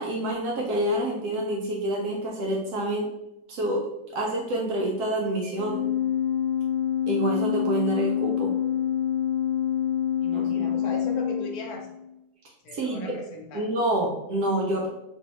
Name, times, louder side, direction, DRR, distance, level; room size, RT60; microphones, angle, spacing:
voice 1, 0.0-3.1 3.5-5.8 7.1-8.5 10.3-10.8 12.7-13.0 13.5-14.9, right 1 dB, 70° right, -1 dB, 1.0 m, -27 dB
Organ, 5.5-12.0, left 9 dB, 40° right, 0.7 m, -26 dB
voice 2, 10.2-11.9 12.6-13.6, left 1 dB, 65° left, 1 dB, 1.0 m, -37 dB
3.2 x 2.7 x 2.9 m, 0.88 s
omnidirectional pair, 2.0 m